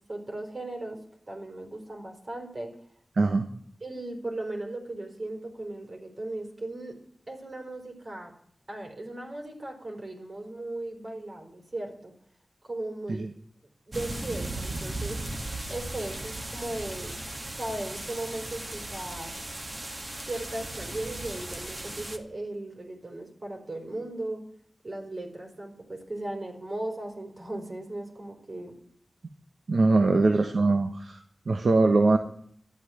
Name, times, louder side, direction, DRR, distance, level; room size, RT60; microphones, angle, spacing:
voice 1, 0.1-1.0 1.3-2.7 3.8-7.0 7.3-8.3 8.7-12.1 12.6-13.3 13.9-15.2 15.7-17.2 17.5-19.4 20.2-24.4 24.8-28.7 30.2-30.4, right 2 dB, 50° right, 3 dB, 4.5 m, -37 dB
sound 1, 13.9-22.2, right 1 dB, 35° right, 1.9 m, -37 dB
voice 2, 29.7-32.2, right 3 dB, 75° right, 6 dB, 1.2 m, -22 dB
12.5 x 8.4 x 9.8 m, 0.62 s
wide cardioid pair, 65°, 0 cm